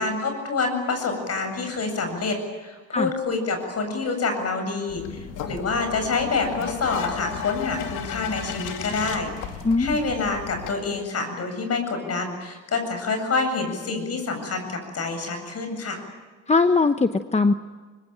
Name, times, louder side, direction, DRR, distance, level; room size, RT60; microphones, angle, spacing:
voice 1, 0.0-9.3 9.8-16.0, left 3 dB, 55° left, 6 dB, 8.0 m, -27 dB
sound 1, 4.9-10.7, left 7 dB, 90° left, 2.7 m, -34 dB
voice 2, 9.6-10.0 16.5-17.5, left 3 dB, 20° left, 9 dB, 1.0 m, -20 dB
25.0 x 22.0 x 9.0 m, 1.4 s
cardioid pair, 90°, 30 cm